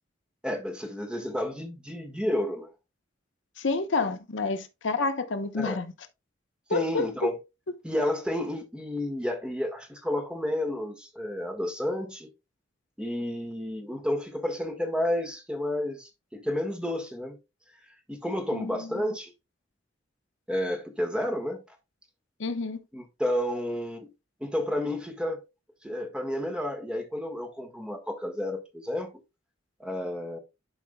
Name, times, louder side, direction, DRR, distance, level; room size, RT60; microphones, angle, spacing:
voice 1, 0.4-2.7 5.6-5.8 6.7-7.4 7.8-12.3 13.0-17.4 18.1-19.3 20.5-21.6 22.9-24.1 24.4-25.4 25.8-29.1 29.8-30.4, left 1 dB, 5° right, 1.5 m, -31 dB
voice 2, 3.6-5.9 6.7-7.3 18.5-19.1 22.4-22.8, left 3 dB, 75° left, 0.8 m, -29 dB
11.5 x 4.7 x 2.2 m
head